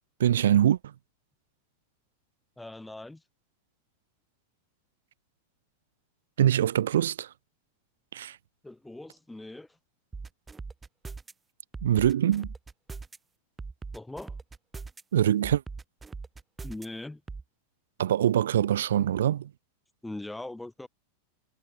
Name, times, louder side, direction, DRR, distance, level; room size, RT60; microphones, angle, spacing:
voice 1, 0.2-0.9 6.4-7.3 8.1-8.4 11.8-12.5 15.1-15.6 18.0-19.5, right 11 dB, 60° right, 7.4 m, -24 dB
voice 2, 2.6-3.2 8.6-9.8 13.9-14.4 16.6-17.2 20.0-20.9, left 2 dB, 5° left, 6.9 m, -41 dB
sound 1, 10.1-11.3 11.7-13.2 13.6-15.0 15.4-16.9 17.3-17.4, right 4 dB, 10° right, 4.4 m, -40 dB
figure-of-eight pair, 90°, 0 cm